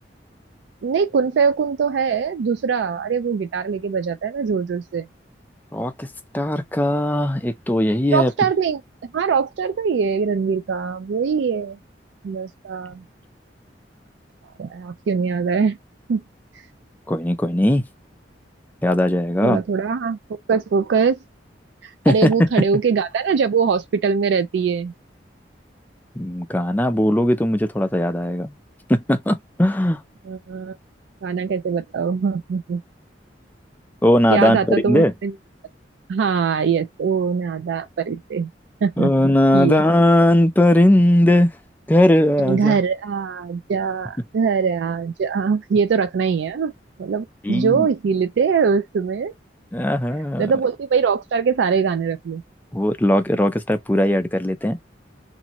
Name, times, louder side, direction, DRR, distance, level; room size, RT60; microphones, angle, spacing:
voice 1, 0.8-5.1 8.1-11.8 12.2-13.0 14.6-15.8 16.1-16.2 19.4-20.2 20.5-21.2 21.8-24.9 30.3-30.7 31.2-32.8 34.3-35.3 36.1-38.5 38.8-39.1 39.5-39.8 42.4-46.7 47.0-49.3 50.4-52.4, right 6 dB, 80° right, 0.4 m, -22 dB
voice 2, 5.7-6.1 6.3-8.3 17.1-17.8 18.8-19.6 22.1-22.7 26.1-28.6 28.9-30.0 34.0-35.1 39.0-41.5 41.9-42.8 47.4-47.9 49.7-50.5 52.7-54.8, left 1 dB, 10° left, 0.5 m, -18 dB
2.9 x 2.6 x 2.9 m
head